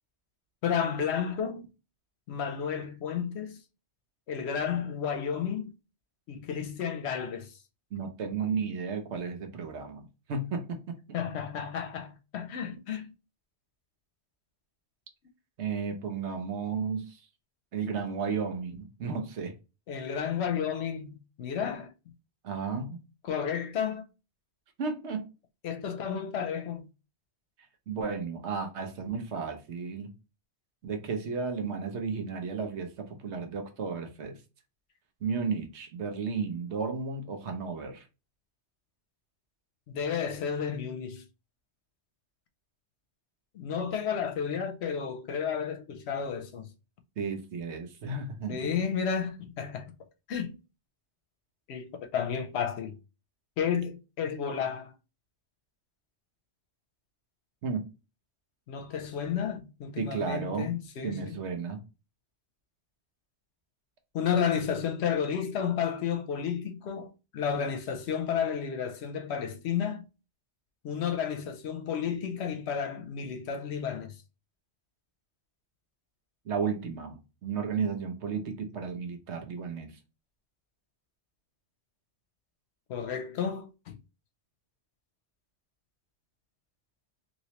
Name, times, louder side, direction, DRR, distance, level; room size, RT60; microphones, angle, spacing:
voice 1, 0.6-1.7 2.3-3.6 4.3-5.7 6.3-7.5 11.1-13.1 19.9-21.9 23.2-24.0 25.6-26.9 39.9-41.2 43.5-46.7 48.5-49.9 50.3-50.5 51.7-52.9 53.6-54.9 58.7-61.4 64.1-70.1 70.8-74.1 82.9-84.0, left 7 dB, 75° left, 0.8 m, -32 dB
voice 2, 7.9-11.0 15.6-17.2 17.7-19.5 22.4-23.0 24.8-25.2 27.9-30.1 30.8-34.4 35.2-38.1 47.2-48.7 57.6-57.8 60.0-60.7 61.0-61.8 76.5-79.9, right 5 dB, 85° right, 1.0 m, -33 dB
3.0 x 2.9 x 2.8 m
omnidirectional pair, 1.1 m